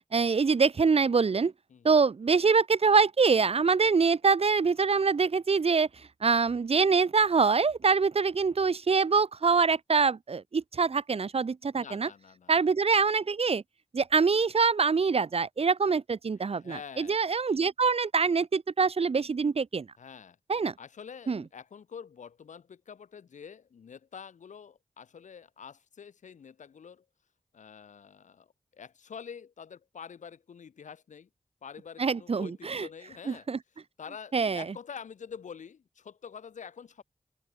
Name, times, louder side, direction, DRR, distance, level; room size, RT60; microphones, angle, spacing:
voice 1, 0.1-1.5 1.8-5.9 6.2-12.1 12.5-13.6 13.9-19.9 20.5-20.7 21.3-21.4 32.0-32.9 33.3-33.6 34.3-34.7, right 5 dB, 55° right, 0.7 m, -25 dB
voice 2, 11.7-12.5 16.5-17.2 20.0-20.4 20.8-27.0 27.5-31.3 31.6-33.5 34.0-37.0, left 7 dB, 90° left, 1.2 m, -46 dB
open air
cardioid pair, 50°, 12 cm